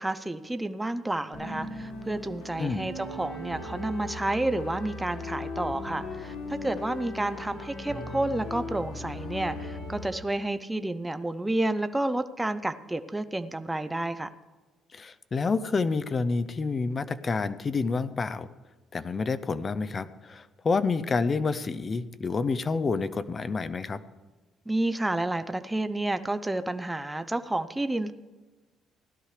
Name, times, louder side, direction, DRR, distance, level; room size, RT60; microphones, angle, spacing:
voice 1, 0.0-14.3 24.7-28.1, right 2 dB, 10° right, 11 dB, 0.6 m, -30 dB
sound 1, 1.3-10.1, left 2 dB, 80° left, 4.9 m, -38 dB
voice 2, 2.6-2.9 14.9-18.5 18.9-24.0, left 4 dB, 35° left, 15 dB, 0.6 m, -28 dB
17.0 x 12.0 x 3.3 m, 1.2 s
cardioid pair, 95°, 0 cm